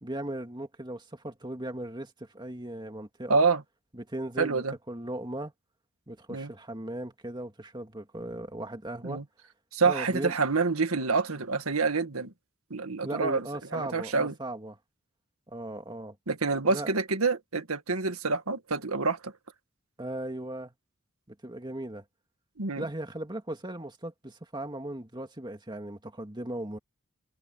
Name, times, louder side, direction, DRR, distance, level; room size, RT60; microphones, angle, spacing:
voice 1, 0.0-3.5 3.9-5.5 6.1-9.2 9.8-10.3 13.0-14.8 15.5-16.2 16.6-16.9 20.0-20.7 21.3-22.0 22.8-26.8, right 1 dB, 20° right, 2.2 m, -37 dB
voice 2, 3.3-3.6 4.4-4.7 6.3-6.5 9.0-9.2 9.7-12.3 12.7-13.4 13.7-14.3 16.3-19.3 22.6-22.9, right 4 dB, 80° right, 1.9 m, -27 dB
head